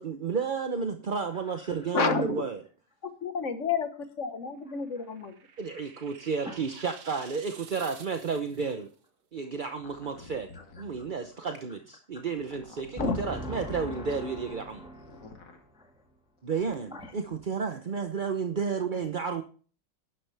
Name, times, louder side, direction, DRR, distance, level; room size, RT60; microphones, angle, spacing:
voice 1, 0.0-2.6 5.6-8.9 9.3-10.5 10.8-14.9 16.4-19.4, right 5 dB, 40° right, 6 dB, 0.7 m, -32 dB
voice 2, 1.3-1.9 6.4-6.9 10.5-11.1 11.4-11.5 13.0-16.2 16.9-17.1, equal, 5° right, 1 dB, 1.6 m, -42 dB
voice 3, 1.9-2.4 3.2-5.3 13.0-13.2, left 5 dB, 45° left, 8 dB, 1.6 m, -29 dB
sound 1, 4.6-8.7, right 7 dB, 70° right, 1.7 m, -51 dB
sound 2, 9.8-11.3 12.3-14.0 15.0-15.6 16.4-17.4, left 3 dB, 75° left, 2.6 m, -50 dB
12.0 x 11.0 x 3.4 m, 0.39 s
omnidirectional pair, 1.9 m